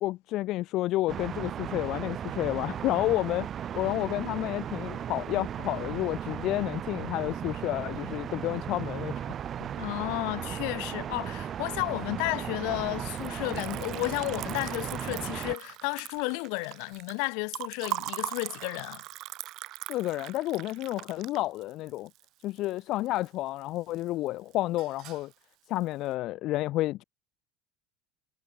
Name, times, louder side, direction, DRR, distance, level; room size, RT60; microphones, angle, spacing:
voice 1, 0.0-3.5 3.7-9.3 19.9-22.1 22.4-25.3 25.7-27.0, left 16 dB, 50° left, 0.6 m, -30 dB
sound 1, 1.1-15.6, right 9 dB, 30° right, 1.2 m, -36 dB
voice 2, 9.8-19.0, left 40 dB or more, 70° left, 1.3 m, -32 dB
Liquid, 13.1-23.3 23.6-24.3 24.5-25.3, right 17 dB, 50° right, 2.1 m, -41 dB
cardioid pair, 150°, 0 cm